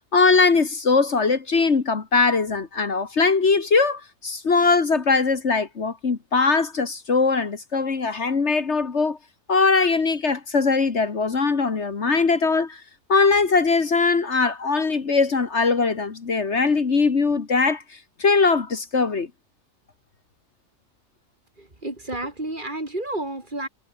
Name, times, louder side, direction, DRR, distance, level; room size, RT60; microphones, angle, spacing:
voice 1, 0.1-9.2 9.5-12.8 13.1-17.8 18.2-19.3, left 4 dB, 55° left, 2.0 m, -21 dB
voice 2, 21.6-23.7, right 1 dB, 35° right, 4.1 m, -31 dB
omnidirectional pair, 1.4 m